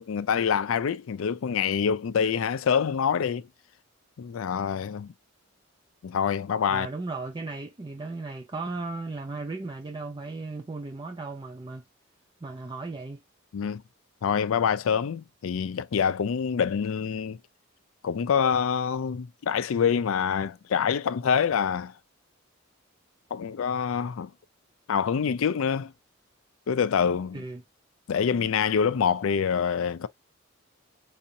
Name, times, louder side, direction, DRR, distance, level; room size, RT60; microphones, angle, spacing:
voice 1, 0.0-3.5 4.2-5.1 6.0-6.9 13.5-13.8 14.2-17.4 18.0-21.9 23.3-24.3 24.9-25.9 26.7-27.4 28.1-30.1, left 7 dB, 80° left, 0.4 m, -26 dB
voice 2, 6.7-11.8 12.4-13.2 27.3-27.6, right 3 dB, 20° right, 0.4 m, -36 dB
4.8 x 2.7 x 2.6 m
head